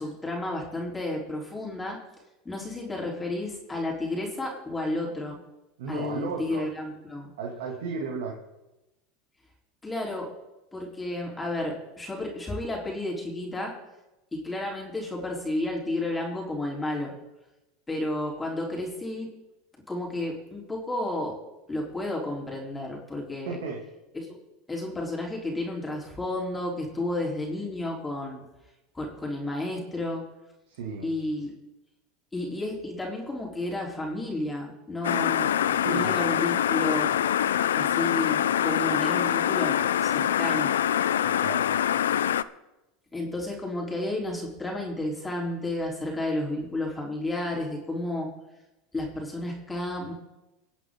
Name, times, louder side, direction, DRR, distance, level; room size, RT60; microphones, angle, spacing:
voice 1, 0.0-2.0 2.5-5.4 5.9-7.3 9.8-10.3 10.7-13.7 14.3-17.1 17.9-19.3 19.9-21.4 21.7-23.6 24.1-24.4 24.7-28.4 28.9-30.3 31.0-31.5 32.3-35.5 35.9-37.1 37.7-40.7 43.1-48.3 48.9-50.1, left 1 dB, 15° left, -1 dB, 3.6 m, -32 dB
voice 2, 5.8-6.6 7.4-8.4 23.5-23.8 30.7-31.1 35.8-36.1 41.2-41.8, right 5 dB, 80° right, -1 dB, 2.4 m, -34 dB
sound 1, 35.0-42.4, left 10 dB, 90° left, 0.4 m, -24 dB
25.0 x 8.4 x 3.8 m, 0.98 s
hypercardioid pair, 100°, 0 cm